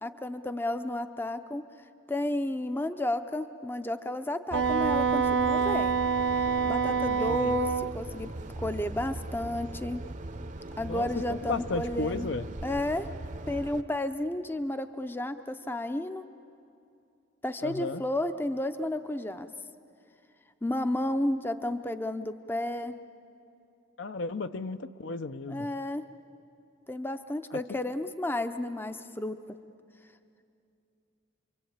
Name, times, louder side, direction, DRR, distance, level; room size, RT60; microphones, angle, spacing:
voice 1, 0.0-1.7 2.1-6.0 6.6-8.3 8.6-10.0 10.8-12.3 12.6-13.1 13.5-16.2 17.4-19.5 20.6-22.9 25.5-26.1 26.9-29.6, left 1 dB, 10° left, 9 dB, 0.5 m, -32 dB
sound 1, 4.5-13.8, right 2 dB, 40° right, 0.7 m, -40 dB
Wind instrument woodwind instrument, 4.5-7.9, right 6 dB, 70° right, 0.6 m, -26 dB
voice 2, 7.0-7.6 10.9-12.5 17.6-18.0 24.0-25.7 27.7-27.8, left 3 dB, 70° left, 11 dB, 0.7 m, -34 dB
27.5 x 23.5 x 8.8 m, 2.6 s
head